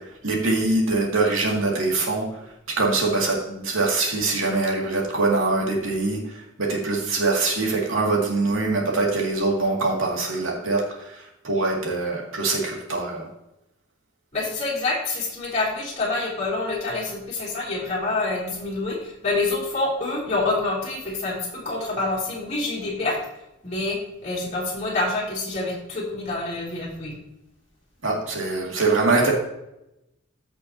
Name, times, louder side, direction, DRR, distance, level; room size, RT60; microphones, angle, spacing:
voice 1, 0.0-2.4 2.7-13.3 28.0-29.3, right 3 dB, 75° right, -1 dB, 2.5 m, -23 dB
voice 2, 14.3-23.2 23.6-24.0 24.2-27.1, left 2 dB, 30° left, -5 dB, 3.2 m, -27 dB
14.5 x 6.4 x 2.9 m, 0.86 s
head